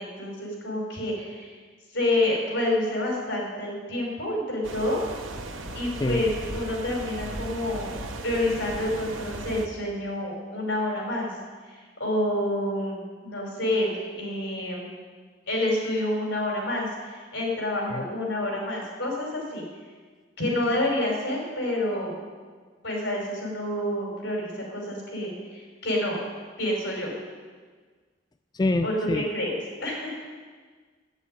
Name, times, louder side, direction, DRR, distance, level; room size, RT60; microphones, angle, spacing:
voice 1, 0.0-1.5 1.9-5.0 5.7-11.3 12.0-14.9 15.5-19.6 20.4-22.2 22.8-26.2 26.6-27.1 28.8-29.6 29.8-30.2, left 1 dB, 60° left, -2 dB, 5.2 m, -28 dB
sound 1, 4.6-9.7, right 2 dB, 85° right, 1.1 m, -36 dB
voice 2, 28.5-29.3, left 2 dB, 20° left, 7 dB, 0.3 m, -26 dB
10.5 x 9.1 x 9.4 m, 1.5 s
head